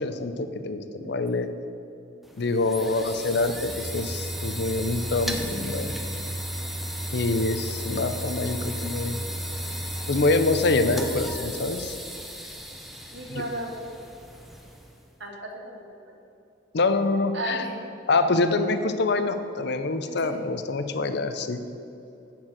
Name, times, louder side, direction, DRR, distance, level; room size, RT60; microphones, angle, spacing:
voice 1, 0.0-1.5 2.4-5.9 7.1-9.2 10.1-12.0 13.3-13.4 16.7-17.7 18.1-21.6, left 3 dB, 60° left, 9 dB, 0.6 m, -25 dB
sound 1, 2.2-15.0, equal, ahead, 0.7 m, -34 dB
voice 2, 13.1-13.7 15.2-16.0 17.3-18.2 20.1-20.4, right 1 dB, 65° right, 1 dB, 1.6 m, -35 dB
9.9 x 4.6 x 7.8 m, 2.7 s
head